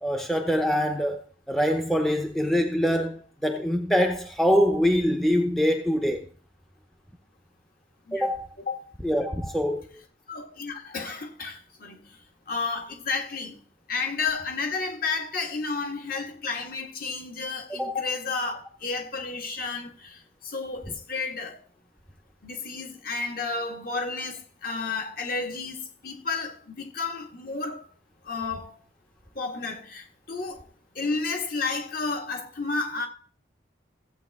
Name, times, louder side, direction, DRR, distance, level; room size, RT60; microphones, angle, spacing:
voice 1, 0.0-6.3 8.1-8.5 9.0-9.9 17.7-17.9, equal, ahead, 0.7 m, -24 dB
voice 2, 10.3-12.0 12.5-13.6 13.9-21.6 22.4-27.8 28.3-28.7 29.4-30.6 31.0-33.1, left 4 dB, 50° left, 1.7 m, -32 dB
15.0 x 8.4 x 3.6 m
head